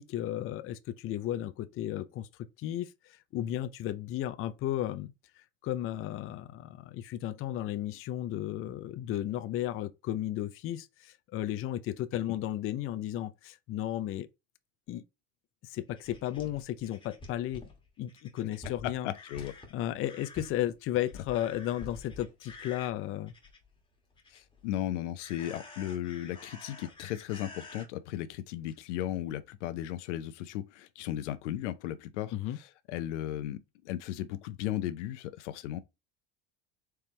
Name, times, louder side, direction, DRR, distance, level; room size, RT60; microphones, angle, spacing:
voice 1, 0.0-2.3 2.6-14.3 14.9-15.0 15.6-17.6 18.0-19.1 19.7-23.3 32.3-32.6, left 12 dB, 40° left, 0.5 m, -34 dB
sound 1, 15.9-23.8 24.1-24.7 25.2-27.9 28.7-28.8 29.2-29.3, left 3 dB, 15° left, 1.5 m, -49 dB
voice 2, 18.8-19.5 24.3-35.8, left 12 dB, 90° left, 0.7 m, -36 dB
4.5 x 3.5 x 3.1 m
supercardioid pair, 105°, 34 cm